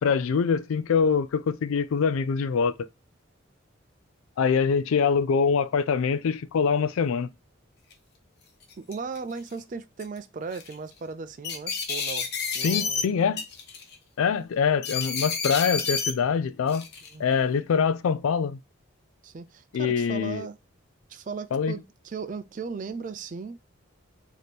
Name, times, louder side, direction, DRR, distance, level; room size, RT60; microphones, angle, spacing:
voice 1, 0.0-2.7 4.4-7.3 12.6-13.4 14.2-16.9 17.2-18.6 19.7-20.5 21.5-21.8, left 6 dB, 90° left, 0.4 m, -24 dB
sound 1, 7.9-8.0 8.6-9.2 10.0-10.2 10.5-10.7 11.4-13.0 13.4-13.9 14.8-16.1 16.7-17.1, left 5 dB, 50° left, 0.8 m, -30 dB
voice 2, 8.8-12.3 12.5-13.1 17.1-17.4 19.2-20.6 21.1-23.6, right 5 dB, 40° right, 0.3 m, -37 dB
4.2 x 2.8 x 3.2 m
head